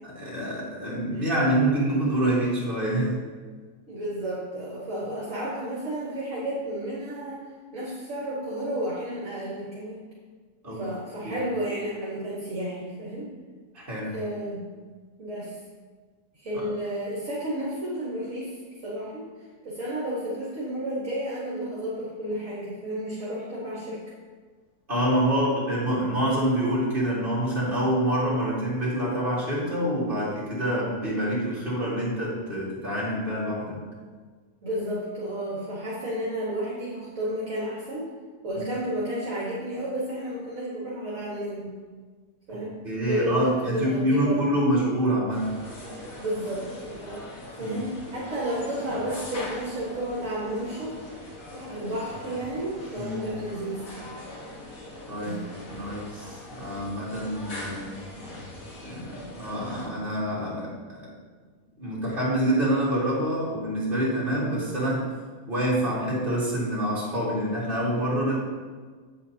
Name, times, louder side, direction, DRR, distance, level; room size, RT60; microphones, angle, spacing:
voice 1, 0.0-3.2 10.6-10.8 11.2-11.5 13.7-14.2 16.5-16.7 24.9-33.9 38.5-38.6 42.5-45.6 47.6-47.9 53.0-53.2 55.1-55.4 55.7-58.1 58.8-61.1 61.8-65.1 65.5-68.4, right 1 dB, 35° right, -7 dB, 2.9 m, -26 dB
voice 2, 3.9-10.0 10.8-13.3 14.1-14.6 15.2-15.6 16.3-24.0 34.6-38.1 38.4-41.7 42.5-42.7 43.1-44.5 46.1-47.2 47.6-50.9 51.5-53.9 55.1-55.5, right 1 dB, 55° right, -8 dB, 2.1 m, -32 dB
sound 1, 45.3-59.9, left 1 dB, 60° left, 2.0 m, -41 dB
8.6 x 8.2 x 2.9 m, 1.5 s
omnidirectional pair, 1.7 m